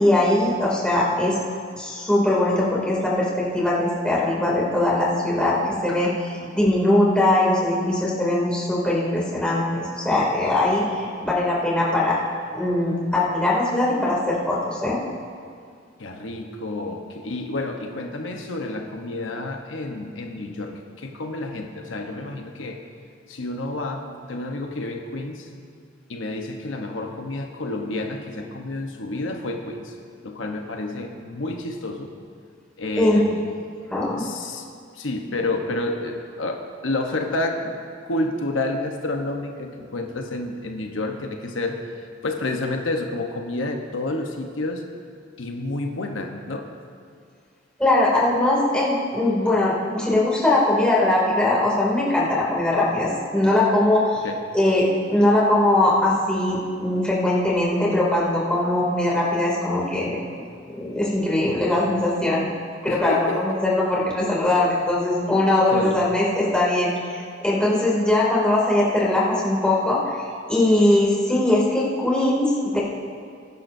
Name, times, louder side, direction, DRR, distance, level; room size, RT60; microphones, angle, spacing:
voice 1, 0.0-1.4 1.8-12.2 12.5-15.0 33.0-33.2 33.9-34.2 47.8-54.2 54.5-60.2 60.7-62.5 62.8-72.8, left 1 dB, 5° left, -6 dB, 2.7 m, -21 dB
voice 2, 16.0-22.8 23.3-25.5 26.1-29.9 30.2-32.1 32.8-33.4 34.2-34.6 34.9-37.8 38.0-41.8 42.2-44.8 45.4-46.7 54.2-54.4 62.9-63.6 65.7-66.0, left 2 dB, 90° left, 3 dB, 1.0 m, -29 dB
21.0 x 10.5 x 2.7 m, 2.2 s
head